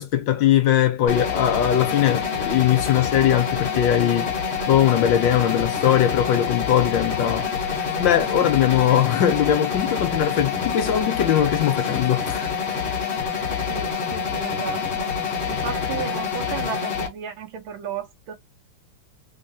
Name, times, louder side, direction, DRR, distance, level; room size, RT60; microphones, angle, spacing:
voice 1, 0.0-4.3 4.7-7.7 8.0-12.5, left 10 dB, 70° left, 1.2 m, -20 dB
sound 1, 1.1-17.1, left 6 dB, 55° left, 0.7 m, -26 dB
voice 2, 13.7-15.1 15.5-18.3, right 8 dB, 70° right, 1.6 m, -34 dB
3.7 x 3.1 x 2.6 m
omnidirectional pair, 2.4 m